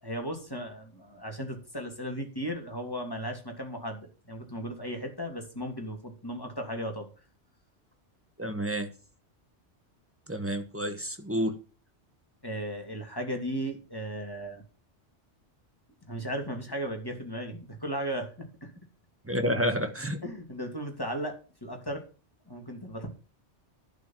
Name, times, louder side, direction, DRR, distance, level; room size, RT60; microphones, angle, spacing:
voice 1, 0.0-7.1 12.4-14.6 16.1-18.7 19.6-19.7 20.2-22.0 22.5-23.1, equal, 20° left, 2.7 m, -36 dB
voice 2, 8.4-8.9 10.3-11.6 19.2-20.2, equal, 10° right, 1.4 m, -29 dB
11.5 x 5.1 x 7.5 m
omnidirectional pair, 1.2 m